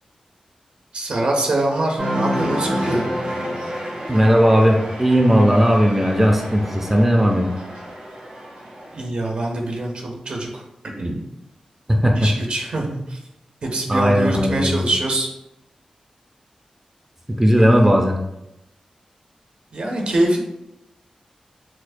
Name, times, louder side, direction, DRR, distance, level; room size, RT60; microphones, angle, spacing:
voice 1, 0.9-3.0 8.9-10.6 11.0-11.2 12.1-13.2 13.6-15.3 17.6-17.9 19.7-20.4, right 1 dB, 60° right, 0 dB, 0.6 m, -24 dB
Cheering, 2.0-9.0, equal, 85° right, 1.4 m, -29 dB
voice 2, 4.1-7.5 11.9-12.3 13.9-14.9 17.3-18.2, equal, 10° right, 1 dB, 0.4 m, -16 dB
4.4 x 2.0 x 2.5 m, 0.86 s
wide cardioid pair, 100°, 2 cm